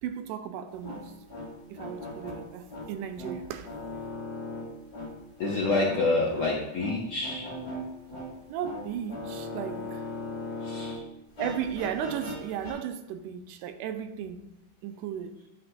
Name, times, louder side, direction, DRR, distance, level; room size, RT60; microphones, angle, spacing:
voice 1, 0.0-1.1 1.7-3.7 8.5-10.1 11.4-14.4 14.8-15.4, right 9 dB, 80° right, 2.0 m, -35 dB
sound 1, 0.7-11.0 11.3-12.7, left 2 dB, 25° left, 2.8 m, -39 dB
voice 2, 5.4-7.5 10.6-11.0, left 3 dB, 85° left, 1.1 m, -27 dB
11.5 x 5.8 x 2.2 m
omnidirectional pair, 3.8 m